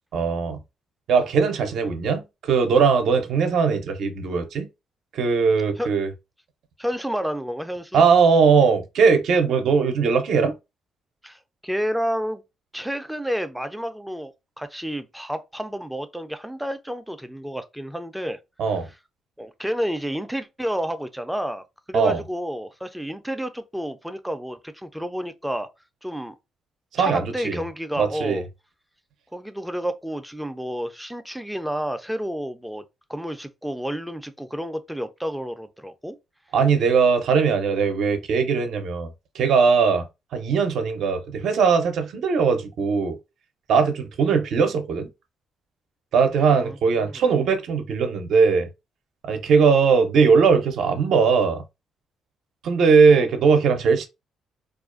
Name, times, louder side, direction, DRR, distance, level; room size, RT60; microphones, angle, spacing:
voice 1, 0.1-0.6 1.1-4.7 5.1-6.1 7.9-10.6 18.6-18.9 21.9-22.2 26.9-27.6 28.0-28.4 36.5-40.1 40.3-43.2 43.7-45.1 46.1-48.7 49.2-51.6 52.6-54.1, right 5 dB, 75° right, 0.5 m, -20 dB
voice 2, 6.8-8.0 11.2-12.4 12.7-18.4 18.8-18.9 19.4-25.7 26.0-26.3 27.0-28.5 29.3-32.8 33.1-36.2 46.5-46.8 47.0-47.2 53.1-53.3, equal, 5° right, 0.3 m, -30 dB
2.4 x 2.2 x 2.4 m
cardioid pair, 90°, 0 cm